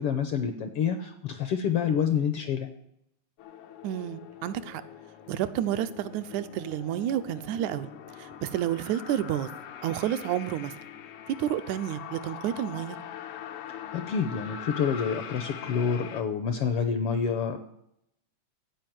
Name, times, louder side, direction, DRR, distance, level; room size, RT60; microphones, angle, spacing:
voice 1, 0.0-2.7 13.9-17.7, left 7 dB, 70° left, 8 dB, 1.4 m, -28 dB
sound 1, 3.4-16.2, left 9 dB, 85° left, 2.4 m, -43 dB
voice 2, 3.8-4.8 5.3-7.9 8.2-9.5 9.8-10.8 11.3-13.0, right 11 dB, 85° right, 11 dB, 2.0 m, -30 dB
15.0 x 5.1 x 9.2 m, 0.77 s
omnidirectional pair, 3.4 m